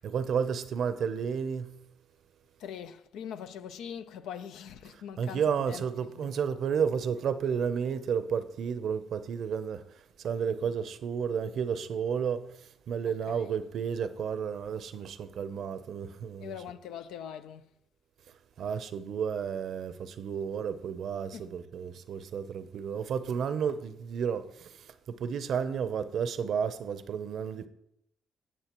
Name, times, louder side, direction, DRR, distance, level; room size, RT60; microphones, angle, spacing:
voice 1, 0.0-1.7 5.2-9.8 10.2-12.4 12.9-16.5 18.6-24.5 25.1-27.7, right 7 dB, 65° right, 0.7 m, -31 dB
voice 2, 2.6-6.3 10.6-10.7 13.0-13.5 16.4-17.7 21.3-21.5, left 8 dB, 90° left, 0.5 m, -42 dB
17.5 x 6.4 x 3.0 m
cardioid pair, 90°, 0 cm